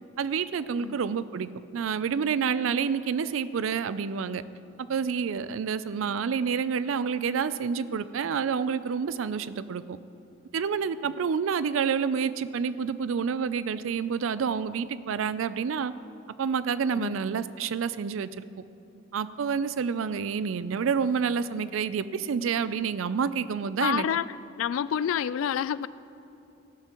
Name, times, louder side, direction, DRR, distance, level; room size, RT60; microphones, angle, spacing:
voice 1, 0.2-4.4 4.8-10.0 10.5-15.9 16.4-18.5 19.1-24.1, right 6 dB, 85° right, 15 dB, 0.4 m, -28 dB
voice 2, 23.8-24.3 24.6-25.9, left 9 dB, 85° left, 17 dB, 0.3 m, -28 dB
16.0 x 11.5 x 3.0 m, 2.7 s
head